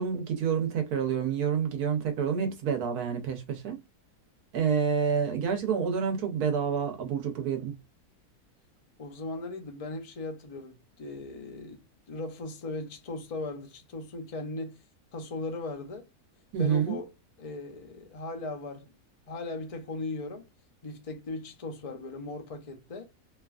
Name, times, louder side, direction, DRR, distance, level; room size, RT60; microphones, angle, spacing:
voice 1, 0.0-3.8 4.5-7.8 16.5-17.0, right 7 dB, 85° right, 1.4 m, -28 dB
voice 2, 9.0-11.8 12.1-14.8 15.1-16.1 16.6-17.1 17.4-18.9 19.3-20.5 20.8-23.1, left 2 dB, 40° left, 0.5 m, -38 dB
3.0 x 2.4 x 2.3 m
omnidirectional pair, 1.6 m